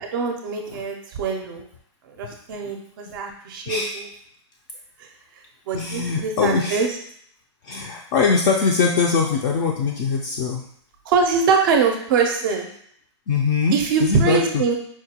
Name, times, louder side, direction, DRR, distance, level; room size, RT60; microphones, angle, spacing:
voice 1, 0.0-1.7 2.1-4.1 5.7-6.9 11.1-12.7 13.7-14.7, right 5 dB, 45° right, 3 dB, 0.5 m, -23 dB
voice 2, 5.7-6.8 7.6-10.7 13.3-14.4, left 5 dB, 40° left, -1 dB, 0.4 m, -22 dB
4.5 x 2.2 x 2.8 m, 0.66 s
hypercardioid pair, 155°, 16 cm